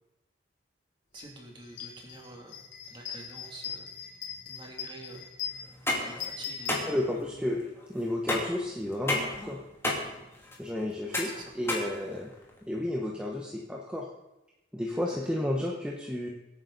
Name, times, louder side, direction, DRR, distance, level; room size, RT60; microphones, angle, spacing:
voice 1, 1.1-2.6 2.9-3.9 4.4-5.3 6.0-6.9 11.2-11.5 14.9-15.5, right 2 dB, 25° right, 0 dB, 2.8 m, -47 dB
sound 1, 1.2-1.3 1.6-7.5, left 7 dB, 85° left, 3.8 m, -41 dB
sound 2, 5.6-12.6, left 1 dB, 15° left, 2.7 m, -33 dB
voice 2, 6.9-7.6 7.9-9.6 10.6-11.3 11.6-12.3 12.6-14.1 14.7-16.3, left 1 dB, 5° right, -2 dB, 1.1 m, -32 dB
22.5 x 8.9 x 4.1 m, 0.98 s
head